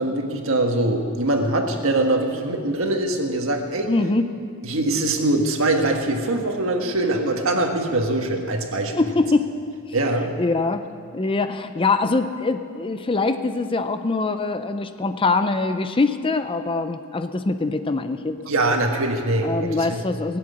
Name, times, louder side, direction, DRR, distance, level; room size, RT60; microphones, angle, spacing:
voice 1, 0.0-3.9 4.6-9.0 9.9-10.4 18.5-20.0, right 2 dB, 65° right, 3 dB, 1.6 m, -23 dB
voice 2, 3.9-4.2 9.0-9.5 10.4-10.8 11.1-18.4 19.4-20.4, left 3 dB, 25° left, 9 dB, 0.5 m, -23 dB
18.0 x 7.8 x 8.5 m, 2.2 s
head